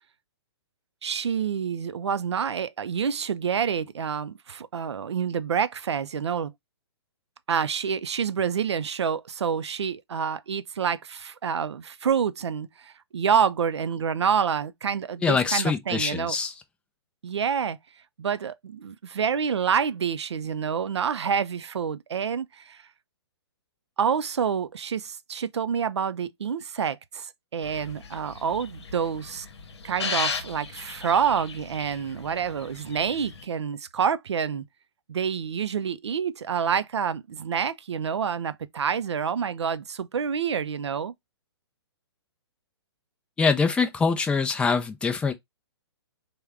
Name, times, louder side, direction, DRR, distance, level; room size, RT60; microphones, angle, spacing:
voice 1, 1.0-6.5 7.5-16.3 17.2-17.8 18.2-22.8 24.0-29.5 29.8-34.6 35.1-41.1, right 7 dB, 90° right, 0.4 m, -27 dB
voice 2, 15.2-16.5 43.4-45.3, left 5 dB, 5° left, 0.4 m, -24 dB
sound 1, 27.6-33.4, left 5 dB, 75° left, 0.8 m, -36 dB
3.4 x 2.2 x 3.4 m
hypercardioid pair, 140°, 14 cm